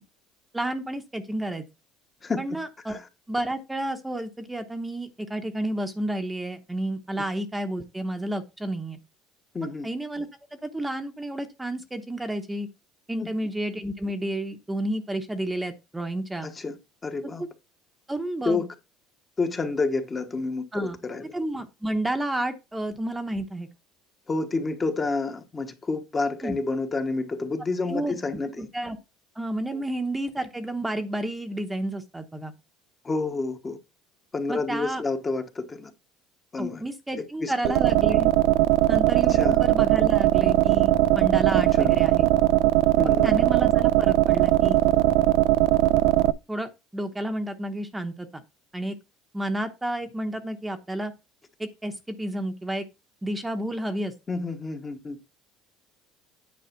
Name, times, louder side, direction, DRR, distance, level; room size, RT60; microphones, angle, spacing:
voice 1, 0.5-1.6 2.4-3.0 3.3-9.0 9.6-10.3 10.6-12.7 13.1-16.5 17.4-17.5 18.1-18.6 20.7-21.0 21.3-23.7 26.4-26.6 27.9-28.2 28.6-29.0 29.4-32.5 34.5-35.0 36.6-38.3 38.9-42.3 43.0-44.8 46.5-48.4 48.7-49.0 49.3-51.1 51.6-52.9 53.2-54.1, right 1 dB, 10° right, 0.9 m, -31 dB
voice 2, 9.5-9.9 13.2-13.3 16.4-16.8 17.0-17.4 18.4-18.7 19.4-21.3 24.3-28.7 29.7-29.9 33.0-33.8 34.3-35.9 36.5-36.8 37.2-37.7 39.3-39.6 41.5-41.9 43.0-43.5 54.3-55.2, left 3 dB, 20° left, 1.1 m, -29 dB
sound 1, 37.6-46.3, right 15 dB, 80° right, 0.5 m, -20 dB
9.5 x 4.7 x 4.5 m
cardioid pair, 130°, 0 cm